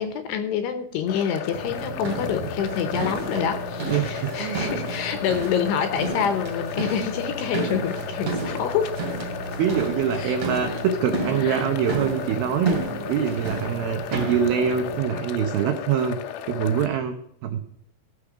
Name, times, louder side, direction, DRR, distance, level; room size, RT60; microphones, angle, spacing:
voice 1, 0.0-8.9 10.2-10.4 10.7-10.8 11.4-11.6, left 8 dB, 75° left, 8 dB, 2.7 m, -27 dB
sound 1, 1.1-16.9, left 9 dB, 90° left, 3.3 m, -34 dB
sound 2, 1.5-15.0, right 3 dB, 40° right, 3.5 m, -32 dB
voice 2, 3.9-4.6 9.6-12.8 13.1-16.2 16.5-17.2 17.4-17.6, right 8 dB, 85° right, 6 dB, 2.1 m, -24 dB
14.5 x 7.0 x 4.9 m, 0.72 s
omnidirectional pair, 5.5 m